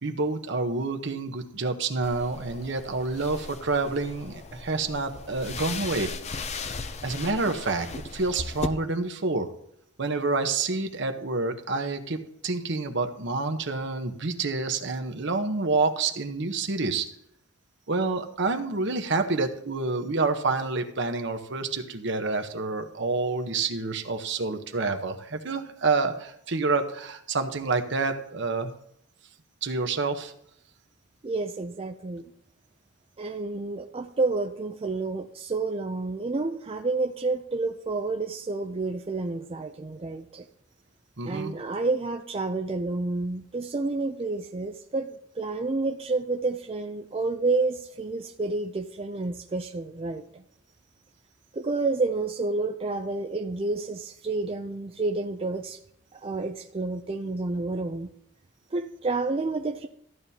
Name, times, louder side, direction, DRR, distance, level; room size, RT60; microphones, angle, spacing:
voice 1, 0.0-6.1 7.0-9.5 10.0-17.1 17.9-28.7 29.6-30.3 41.2-41.5, right 3 dB, 60° right, 7 dB, 1.0 m, -28 dB
sound 1, 2.0-8.7, left 4 dB, 35° left, 0.5 m, -37 dB
voice 2, 31.2-32.2 33.2-40.4 41.2-50.4 51.5-55.8 56.1-58.1 58.7-59.9, right 3 dB, 30° right, 4 dB, 0.4 m, -29 dB
14.0 x 10.5 x 2.8 m, 0.73 s
head